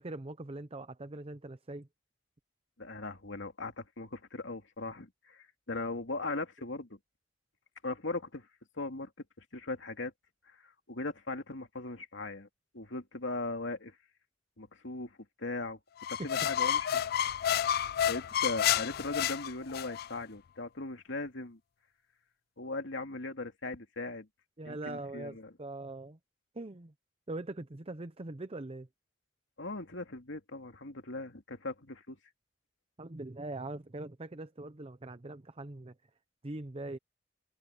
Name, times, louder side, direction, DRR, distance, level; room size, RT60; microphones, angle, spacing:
voice 1, 0.0-1.9 16.2-16.3 24.6-26.2 26.5-26.9 27.3-28.9 33.0-35.9 36.4-37.0, right 2 dB, 30° right, 0.8 m, -42 dB
voice 2, 2.8-7.0 7.8-8.5 8.8-9.1 9.4-10.1 10.6-12.5 12.7-14.0 14.6-15.8 16.1-16.9 18.1-21.6 22.6-24.3 24.6-25.5 29.6-32.2, left 2 dB, 85° left, 2.7 m, -39 dB
sound 1, 16.0-20.1, left 10 dB, 55° left, 0.4 m, -30 dB
head